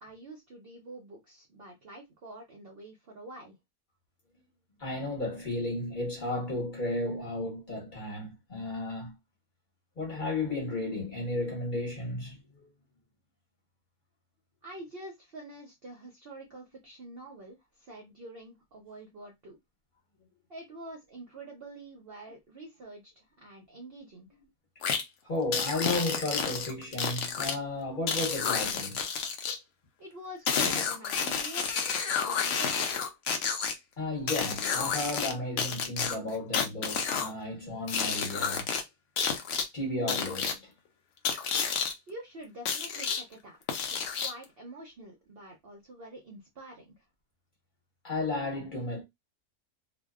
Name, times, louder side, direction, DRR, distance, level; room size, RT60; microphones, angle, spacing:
voice 1, 0.0-3.6 14.6-19.6 20.5-24.3 30.0-33.0 42.1-43.6 43.9-47.0, right 1 dB, 55° right, 0.6 m, -46 dB
voice 2, 4.8-9.1 10.0-12.7 25.2-29.0 34.0-38.7 39.7-40.7 48.0-49.0, left 2 dB, 35° left, 1.1 m, -33 dB
sound 1, 24.8-25.0 25.5-27.5 28.1-29.6 30.5-33.7 34.3-35.3 35.6-37.3 37.9-38.8 39.2-39.6 40.1-40.5 41.2-41.9 42.7-43.2 43.7-44.4, left 6 dB, 65° left, 0.8 m, -30 dB
2.6 x 2.2 x 2.3 m
omnidirectional pair, 1.6 m